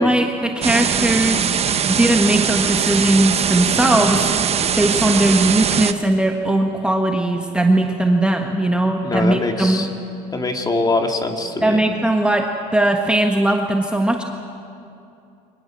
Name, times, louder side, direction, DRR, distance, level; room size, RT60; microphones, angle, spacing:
voice 1, 0.0-1.5 1.9-4.3 4.8-9.8 11.6-14.2, right 1 dB, 5° right, 2 dB, 1.5 m, -19 dB
sound 1, 0.6-5.9, right 7 dB, 35° right, 1.0 m, -21 dB
voice 2, 9.0-9.9 10.3-11.8, left 2 dB, 20° left, 4 dB, 2.4 m, -23 dB
24.5 x 20.5 x 7.6 m, 2.6 s
supercardioid pair, 100°, 18 cm